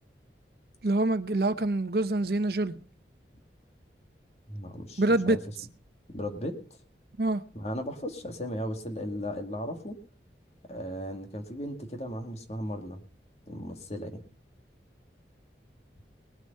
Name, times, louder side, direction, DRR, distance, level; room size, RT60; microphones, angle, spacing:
voice 1, 0.8-2.7 5.0-5.4 7.2-7.4, right 2 dB, 60° right, 0.8 m, -25 dB
voice 2, 4.5-5.4 6.1-6.6 7.5-10.0 10.7-13.0 13.5-14.2, equal, 35° left, 2.2 m, -36 dB
20.0 x 8.1 x 5.5 m
head